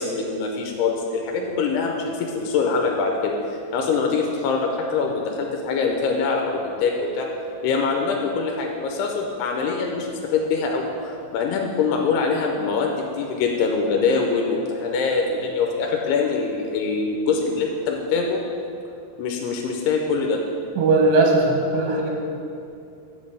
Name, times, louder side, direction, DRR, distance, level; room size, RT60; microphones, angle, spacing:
voice 1, 0.0-7.3 7.6-18.4 19.2-20.4, left 4 dB, 85° left, 1 dB, 2.7 m, -24 dB
voice 2, 20.8-22.1, right 2 dB, 70° right, -1 dB, 1.8 m, -18 dB
7.8 x 5.2 x 6.8 m, 2.6 s
omnidirectional pair, 4.6 m